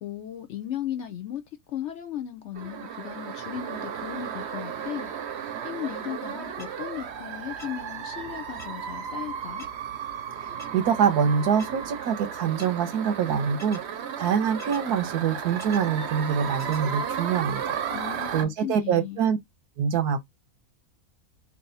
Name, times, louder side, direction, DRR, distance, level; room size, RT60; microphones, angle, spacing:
voice 1, 0.0-1.4 1.7-5.1 5.6-9.6 17.9-19.2, left 10 dB, 65° left, 0.7 m, -36 dB
sound 1, 2.5-18.4, right 8 dB, 60° right, 0.8 m, -34 dB
sound 2, 6.6-6.7 7.6-7.7 8.6-8.7 9.6-9.7 10.6-10.7 11.6-11.7 12.6-12.7 13.6-13.8 14.6-14.8 15.6-15.8 16.6-16.8, left 3 dB, 25° left, 1.2 m, -44 dB
voice 2, 10.4-17.8 18.3-19.4 19.8-20.2, right 7 dB, 90° right, 1.3 m, -25 dB
3.3 x 2.5 x 3.8 m
omnidirectional pair, 1.6 m